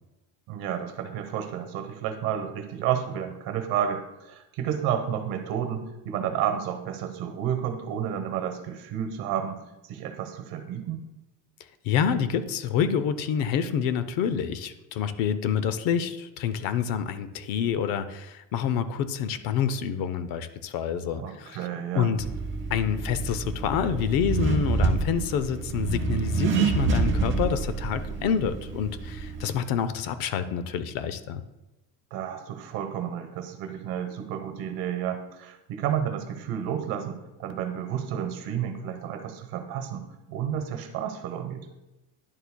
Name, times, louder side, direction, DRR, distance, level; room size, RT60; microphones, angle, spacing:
voice 1, 0.5-11.1 21.1-22.1 32.1-41.7, right 9 dB, 60° right, 7 dB, 1.1 m, -31 dB
voice 2, 11.8-21.6 21.9-22.3 22.7-31.4, left 8 dB, 60° left, 12 dB, 0.6 m, -27 dB
Accelerating revving vroom, 22.2-29.5, right 4 dB, 30° right, 0.7 m, -27 dB
10.5 x 7.0 x 2.2 m, 0.99 s
cardioid pair, 170°, 40 cm